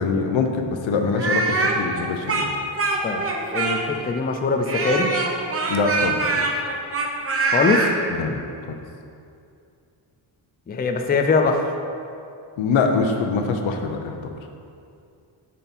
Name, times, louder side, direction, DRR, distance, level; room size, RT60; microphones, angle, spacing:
voice 1, 0.0-2.5 5.7-6.2 8.2-8.5 12.6-14.2, left 4 dB, 85° left, 4 dB, 0.8 m, -23 dB
Speech, 1.1-4.0 4.7-7.9, right 3 dB, 30° right, 0.8 m, -23 dB
voice 2, 3.0-5.1 7.4-7.9 10.7-11.7, left 4 dB, 20° left, 4 dB, 0.4 m, -22 dB
9.0 x 4.4 x 4.2 m, 2.5 s
wide cardioid pair, 125°, 46 cm